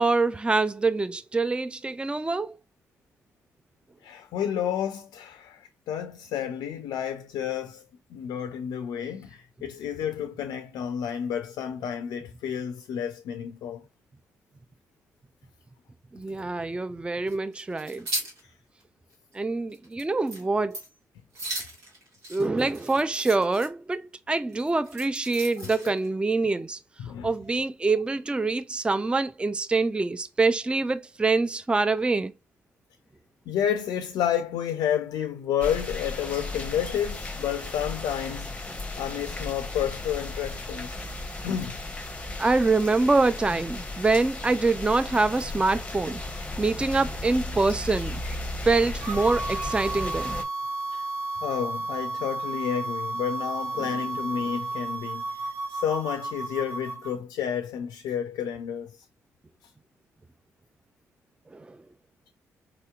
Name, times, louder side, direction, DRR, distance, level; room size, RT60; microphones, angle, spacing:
voice 1, 0.0-2.6 16.1-18.1 19.3-20.8 22.3-26.8 27.2-32.3 42.4-46.2 46.6-48.2 48.6-50.4 53.8-53.9 61.5-61.8, right 3 dB, 15° right, 0.3 m, -25 dB
voice 2, 4.0-7.8 8.1-13.8 25.6-25.9 27.0-27.3 33.5-41.0 41.4-41.8 50.9-51.1 51.4-59.0, left 9 dB, 75° left, 0.4 m, -31 dB
sound 1, 17.3-18.4 18.8-18.9 19.3-19.4 19.7-20.0 20.3-20.4 20.7-21.0 21.3-23.7 24.5-26.1, right 1 dB, 85° right, 1.4 m, -36 dB
sound 2, 35.6-50.4, left 2 dB, 15° left, 0.7 m, -35 dB
sound 3, 49.0-57.2, right 2 dB, 50° right, 0.9 m, -33 dB
4.0 x 2.8 x 2.2 m
hypercardioid pair, 45°, 7 cm